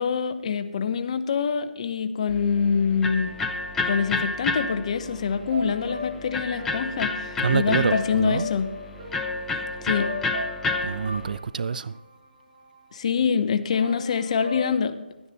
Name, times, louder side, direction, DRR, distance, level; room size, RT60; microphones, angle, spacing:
voice 1, 0.0-3.3 3.9-8.7 9.8-10.1 12.9-14.9, left 6 dB, 40° left, 0.7 m, -25 dB
Electric guitar, 2.3-11.4, left 3 dB, 5° left, 0.6 m, -30 dB
sound 1, 4.9-12.9 13.7-14.7, left 1 dB, 40° right, 3.1 m, -38 dB
voice 2, 7.4-8.5 10.8-12.0, right 6 dB, 55° right, 0.4 m, -26 dB
12.0 x 9.7 x 4.1 m
figure-of-eight pair, 160°, 5 cm